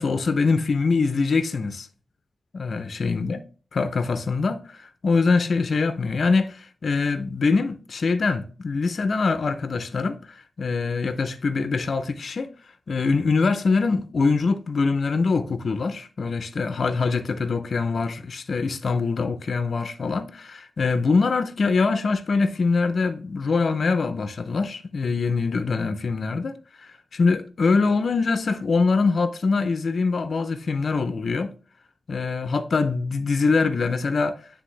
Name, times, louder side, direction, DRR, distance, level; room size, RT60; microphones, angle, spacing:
voice 1, 0.0-1.9 2.5-3.4 3.7-12.5 12.9-31.5 32.1-34.4, left 4 dB, 60° left, 0.5 m, -23 dB
9.8 x 3.3 x 3.1 m
wide cardioid pair, 120°, 0 cm